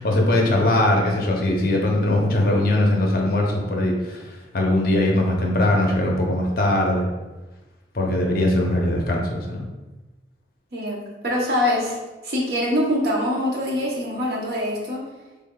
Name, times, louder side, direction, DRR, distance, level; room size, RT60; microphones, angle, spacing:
voice 1, 0.0-4.2 4.5-7.1 7.9-9.7, left 1 dB, 55° left, 0 dB, 0.6 m, -20 dB
voice 2, 10.7-12.0 12.2-15.0, left 1 dB, 55° right, -3 dB, 0.8 m, -24 dB
3.7 x 3.3 x 2.2 m, 1.1 s
head